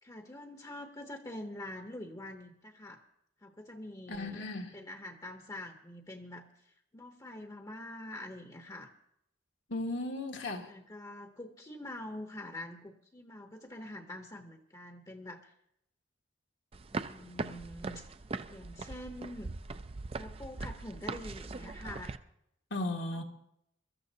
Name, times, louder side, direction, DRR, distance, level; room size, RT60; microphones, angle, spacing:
voice 1, 0.0-3.0 3.4-4.5 4.7-8.9 10.7-15.5 16.9-18.1 18.5-19.5 20.1-22.1 23.1-23.2, left 1 dB, 20° left, 0.8 m, -45 dB
voice 2, 4.1-4.7 9.7-10.7 22.7-23.2, left 2 dB, 80° left, 1.6 m, -36 dB
sound 1, 16.7-22.2, right 3 dB, 30° right, 0.4 m, -40 dB
24.0 x 13.5 x 2.8 m
head